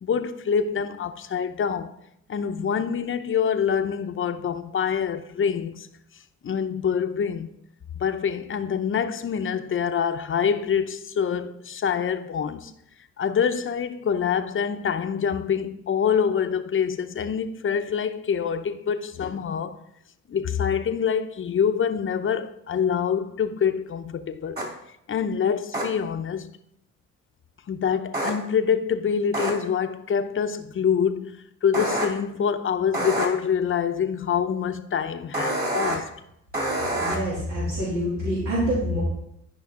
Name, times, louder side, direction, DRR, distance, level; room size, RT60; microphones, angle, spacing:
voice 1, 0.0-1.9 2.3-5.9 6.4-7.5 7.9-12.7 13.2-19.7 20.3-24.6 25.1-26.5 27.7-36.1, left 7 dB, 45° left, 0.7 m, -25 dB
sound 1, 24.6-24.7 25.7-25.8 28.1-28.3 29.3-29.5 31.7-32.0 32.9-33.3 35.3-36.0 36.5-37.2, right 1 dB, 30° right, 2.9 m, -26 dB
voice 2, 36.9-39.0, equal, 85° right, 2.9 m, -26 dB
12.0 x 5.4 x 3.8 m
cardioid pair, 90°, 30 cm